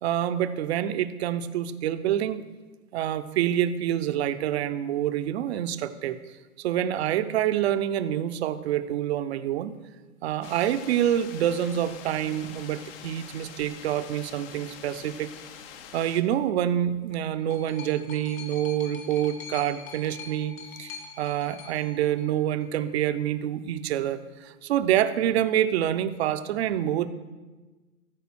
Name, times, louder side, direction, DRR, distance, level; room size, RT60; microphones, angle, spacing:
voice 1, 0.0-2.4 2.9-6.2 6.6-9.8 10.2-15.3 15.9-27.1, right 11 dB, 50° right, 11 dB, 0.7 m, -27 dB
sound 1, 10.4-16.2, left 8 dB, 40° left, 0.8 m, -45 dB
sound 2, 16.8-22.8 23.7-23.8, left 6 dB, 70° left, 2.1 m, -44 dB
14.5 x 5.0 x 6.1 m, 1.3 s
hypercardioid pair, 115°, 42 cm